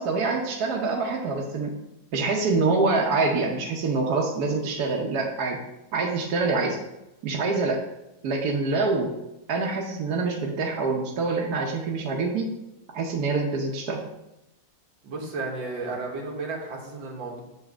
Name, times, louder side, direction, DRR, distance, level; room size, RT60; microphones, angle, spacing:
voice 1, 0.0-1.7 2.1-5.6 5.9-6.8 7.2-7.8 8.2-9.1 9.5-12.5 12.9-14.0, right 3 dB, 65° right, -1 dB, 1.2 m, -25 dB
voice 2, 15.0-17.4, right 3 dB, 85° right, 0 dB, 2.0 m, -33 dB
8.0 x 3.2 x 6.0 m, 0.92 s
omnidirectional pair, 2.0 m